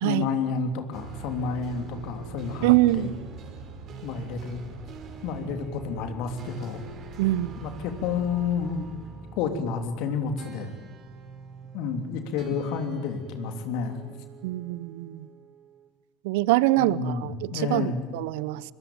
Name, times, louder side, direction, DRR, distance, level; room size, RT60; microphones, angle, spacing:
voice 1, 0.0-3.1 4.0-4.6 5.2-6.8 7.6-8.9 9.3-10.7 11.7-14.0 16.8-18.0, left 5 dB, 65° left, 6 dB, 3.2 m, -30 dB
sound 1, 0.9-15.9, right 4 dB, 45° right, 5.7 m, -43 dB
voice 2, 2.6-3.1 7.2-7.6 14.4-15.3 16.2-18.6, right 18 dB, 70° right, 20 dB, 0.8 m, -24 dB
25.0 x 23.5 x 9.2 m, 1.3 s
hypercardioid pair, 75°, 0 cm